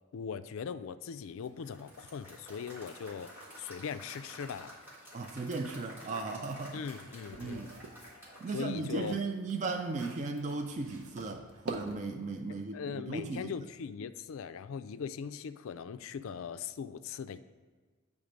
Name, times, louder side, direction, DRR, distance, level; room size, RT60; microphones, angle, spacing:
voice 1, 0.1-4.8 6.7-7.7 8.5-9.2 12.5-17.4, left 6 dB, 65° left, 12 dB, 0.3 m, -40 dB
Applause / Crowd, 1.4-9.6, equal, 10° right, 1.5 m, -51 dB
voice 2, 5.1-6.9 7.4-7.7 8.4-13.5, right 3 dB, 35° right, 4 dB, 0.4 m, -36 dB
sound 1, 5.8-8.0 8.4-12.2, right 3 dB, 75° right, 0.8 m, -46 dB
8.1 x 3.6 x 5.1 m, 1.5 s
head